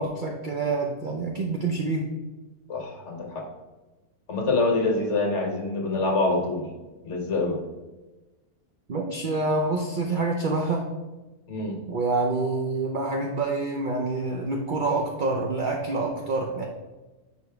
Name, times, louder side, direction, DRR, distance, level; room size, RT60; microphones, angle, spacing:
voice 1, 0.0-2.0 8.9-10.8 11.9-16.6, right 3 dB, 60° right, 1 dB, 0.5 m, -27 dB
voice 2, 2.7-3.4 4.3-6.7 7.0-7.6 11.5-11.8, left 3 dB, 55° left, 1 dB, 1.1 m, -25 dB
5.1 x 4.9 x 4.6 m, 1.2 s
omnidirectional pair, 1.6 m